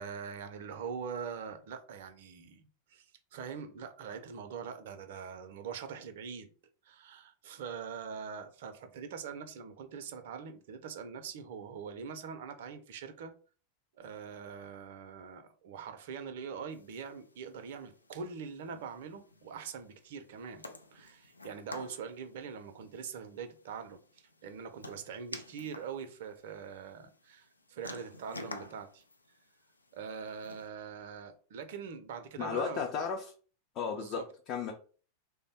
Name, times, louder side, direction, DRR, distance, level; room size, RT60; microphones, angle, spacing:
voice 1, 0.0-2.6 2.9-3.1 3.3-6.5 6.8-13.3 14.0-29.0 29.9-32.8 34.0-34.2, right 6 dB, 55° right, 0.5 m, -43 dB
sound 1, 16.7-30.7, left 2 dB, 80° left, 0.4 m, -51 dB
voice 2, 32.4-33.3 33.7-34.7, left 6 dB, 35° left, 0.6 m, -34 dB
3.3 x 2.1 x 4.1 m
figure-of-eight pair, 90°, 0 cm